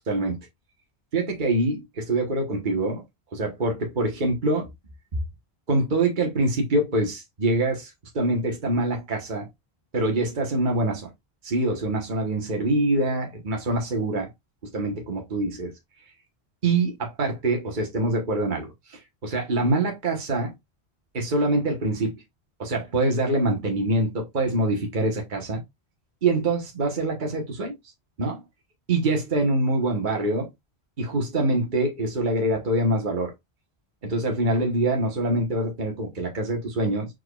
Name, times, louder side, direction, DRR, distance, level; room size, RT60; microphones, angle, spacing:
voice 1, 0.1-0.4 1.1-3.0 3.3-4.7 5.7-9.5 9.9-11.1 11.4-14.3 14.7-15.7 16.6-20.5 21.1-22.1 22.6-25.6 26.2-27.7 28.2-28.4 28.9-30.5 31.0-33.3 34.0-37.1, right 2 dB, 45° right, 1.4 m, -25 dB
4.7 x 4.6 x 2.3 m
omnidirectional pair, 1.1 m